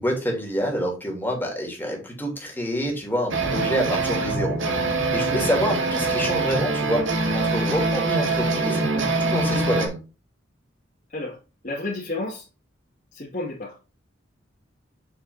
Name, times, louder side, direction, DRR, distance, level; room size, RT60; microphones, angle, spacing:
voice 1, 0.0-4.6 5.1-10.0, equal, 10° left, 3.1 m, -27 dB
sound 1, 3.3-9.9, right 3 dB, 75° right, 2.1 m, -24 dB
voice 2, 11.6-12.5 13.1-13.8, left 2 dB, 40° left, 2.2 m, -31 dB
7.2 x 6.8 x 2.7 m
head